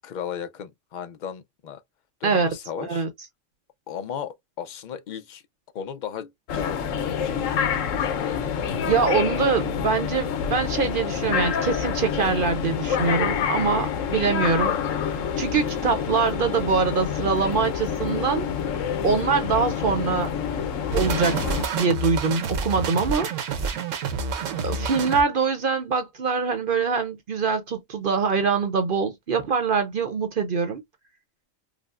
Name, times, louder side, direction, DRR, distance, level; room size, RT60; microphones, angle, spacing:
voice 1, 0.0-1.8 2.2-3.0 3.9-5.4 5.7-7.4 24.6-24.9, left 8 dB, 60° left, 0.5 m, -36 dB
voice 2, 2.2-2.5 2.8-3.1 8.9-14.7 15.4-18.5 19.0-20.3 20.9-21.4 21.7-23.3 24.6-30.8, right 5 dB, 50° right, 0.7 m, -24 dB
sound 1, 6.5-21.6, left 7 dB, 85° left, 1.1 m, -27 dB
sound 2, 20.9-25.2, right 4 dB, 85° right, 1.1 m, -28 dB
5.0 x 2.0 x 2.4 m
omnidirectional pair, 1.3 m